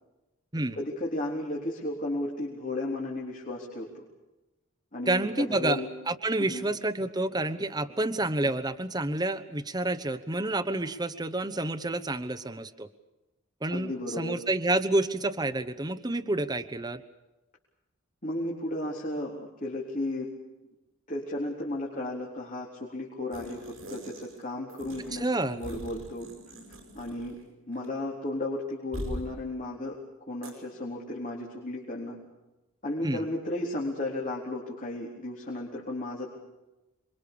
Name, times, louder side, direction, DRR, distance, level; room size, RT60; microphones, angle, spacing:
voice 1, 0.8-4.0 4.9-5.9 6.5-6.7 13.7-14.4 18.2-20.3 21.1-26.3 26.9-27.4 27.7-30.0 30.3-32.2 32.8-36.3, left 1 dB, 40° left, -3 dB, 4.0 m, -34 dB
voice 2, 5.1-5.8 6.1-12.9 13.6-17.0 25.2-25.6 33.0-33.2, right 2 dB, 20° right, 8 dB, 1.0 m, -29 dB
sound 1, 23.3-24.4 24.7-27.5 27.7-27.9 28.9-29.3 30.4-30.5, equal, 70° right, 7.8 m, -42 dB
27.5 x 23.5 x 7.0 m, 1.0 s
head